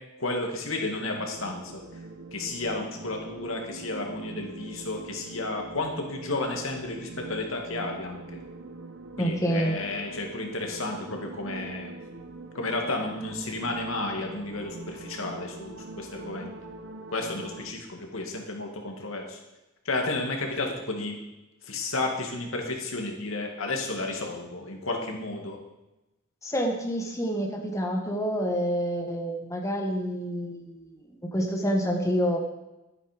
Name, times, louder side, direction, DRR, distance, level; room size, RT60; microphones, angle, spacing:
voice 1, 0.2-1.8 2.3-8.2 9.2-11.9 12.5-16.5 17.1-19.4 19.9-21.2 21.6-25.6, left 2 dB, 85° left, 2 dB, 2.3 m, -32 dB
sound 1, 1.2-17.7, right 3 dB, 70° right, 0.9 m, -43 dB
voice 2, 9.2-9.8 26.4-30.9 31.2-32.4, equal, 15° left, 1 dB, 1.5 m, -28 dB
12.5 x 9.6 x 5.2 m, 0.99 s
head